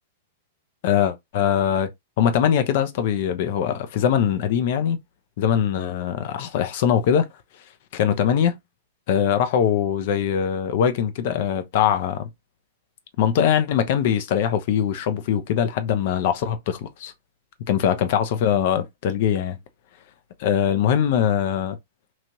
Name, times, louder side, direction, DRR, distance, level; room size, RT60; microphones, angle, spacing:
voice 1, 0.8-1.9 2.2-5.0 5.4-7.3 7.9-8.6 9.1-12.3 13.2-17.1 17.7-19.6 20.4-21.8, left 9 dB, 55° left, 0.6 m, -22 dB
3.0 x 2.5 x 2.8 m
hypercardioid pair, 110°, 0 cm